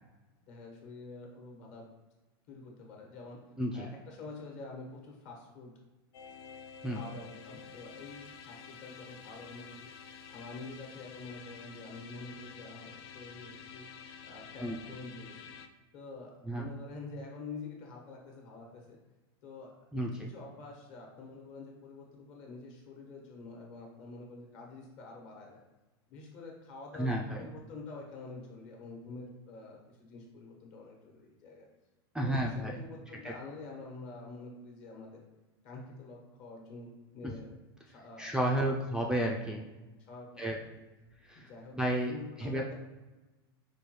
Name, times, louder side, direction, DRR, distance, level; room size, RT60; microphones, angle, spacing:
voice 1, 0.5-1.9 2.5-3.4 3.7-5.7 6.9-9.9 10.3-13.9 14.3-15.5 15.9-19.0 19.4-19.7 20.1-25.6 26.1-31.7 32.2-35.2 35.6-37.6 37.9-38.8 40.0-40.6 41.3-41.7 42.1-42.7, left 3 dB, 55° left, -1 dB, 1.2 m, -47 dB
sound 1, 6.1-15.7, left 6 dB, 70° left, 0.4 m, -50 dB
voice 2, 19.9-20.3 27.0-27.5 32.1-32.8 33.2-33.3 37.2-37.3 38.2-39.6 40.4-40.6 41.3-41.4 41.7-42.1 42.4-42.6, right 1 dB, 5° right, -1 dB, 0.3 m, -31 dB
4.7 x 2.2 x 3.0 m, 1.1 s
supercardioid pair, 120°, 13 cm